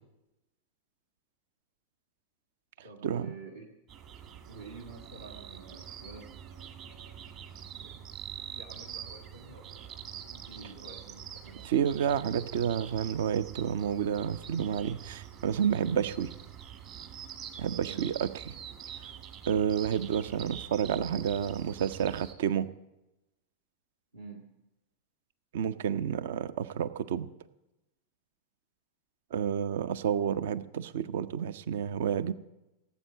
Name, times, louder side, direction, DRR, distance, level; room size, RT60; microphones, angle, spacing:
voice 1, 2.8-3.7 4.5-6.3 7.8-8.0 8.4-11.8 17.8-18.1 24.1-24.4, right 3 dB, 75° right, -1 dB, 1.6 m, -49 dB
sound 1, 3.9-22.3, right 9 dB, 40° right, 1.6 m, -45 dB
voice 2, 11.6-16.3 17.6-18.6 19.5-22.7 25.5-27.3 29.3-32.3, right 8 dB, 55° right, 16 dB, 0.6 m, -30 dB
17.0 x 8.2 x 8.7 m, 0.96 s
figure-of-eight pair, 90°, 0 cm